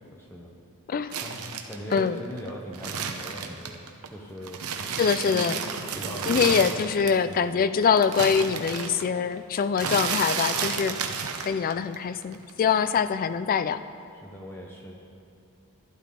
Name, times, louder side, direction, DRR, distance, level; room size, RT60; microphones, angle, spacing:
voice 1, 0.1-0.5 1.2-3.8 4.1-4.9 5.2-5.6 5.9-6.6 7.2-7.5 10.8-10.9 14.2-15.0, equal, 10° left, -2 dB, 0.8 m, -40 dB
sound 1, 1.1-4.1 4.4-7.3 7.6-12.0 12.2-13.1, right 6 dB, 75° right, 0.8 m, -32 dB
voice 2, 1.9-2.2 5.0-5.6 6.3-11.0 11.4-13.8, left 6 dB, 40° left, 13 dB, 0.3 m, -24 dB
12.0 x 12.0 x 3.7 m, 2.7 s
head